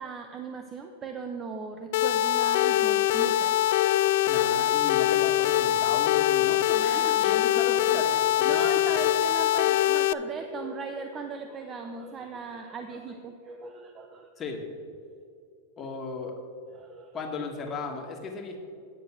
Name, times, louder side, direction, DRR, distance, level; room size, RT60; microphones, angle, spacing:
voice 1, 0.0-3.6 6.8-7.4 7.9-8.0 8.4-14.3 16.7-17.2, right 5 dB, 25° right, 5 dB, 0.7 m, -38 dB
sound 1, 1.9-10.1, left 13 dB, 60° left, 0.3 m, -23 dB
voice 2, 4.3-9.1 12.0-12.1 14.4-14.6 15.8-16.4 17.1-18.6, left 4 dB, 25° left, 2 dB, 1.6 m, -36 dB
10.0 x 6.4 x 6.0 m, 2.4 s
hypercardioid pair, 120°, 0 cm